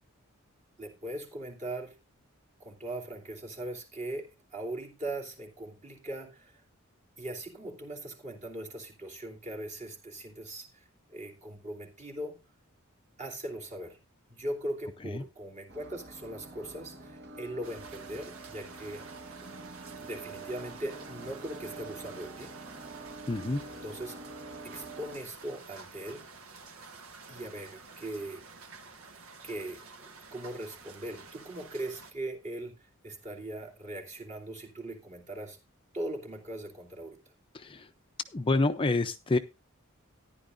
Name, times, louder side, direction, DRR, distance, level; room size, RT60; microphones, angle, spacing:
voice 1, 0.8-2.0 2.6-6.6 7.2-12.4 13.2-14.0 14.3-19.0 20.0-22.5 23.8-24.2 24.6-26.4 27.3-28.4 29.4-35.6 35.9-37.2, right 1 dB, 35° right, 0 dB, 2.8 m, -40 dB
sound 1, 15.7-25.2, right 3 dB, 55° right, 1.4 m, -46 dB
sound 2, 17.6-32.1, right 4 dB, 75° right, 1.4 m, -50 dB
voice 2, 23.3-23.6 37.5-37.9 38.3-39.4, left 2 dB, 25° left, 7 dB, 0.5 m, -28 dB
14.0 x 11.0 x 2.6 m, 0.25 s
head